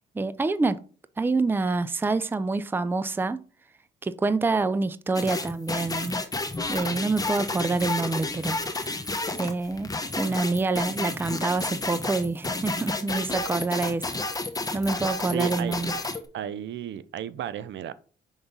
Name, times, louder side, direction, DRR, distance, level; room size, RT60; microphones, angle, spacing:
voice 1, 0.1-0.8 1.2-3.4 4.0-6.2 6.7-8.9 9.4-14.1 14.7-16.0, right 3 dB, 10° right, 0.4 m, -27 dB
sound 1, 5.1-16.2, left 2 dB, 20° left, 1.2 m, -31 dB
voice 2, 15.3-15.8 16.3-17.9, right 11 dB, 65° right, 0.5 m, -33 dB
5.5 x 3.5 x 5.3 m
cardioid pair, 90°, 20 cm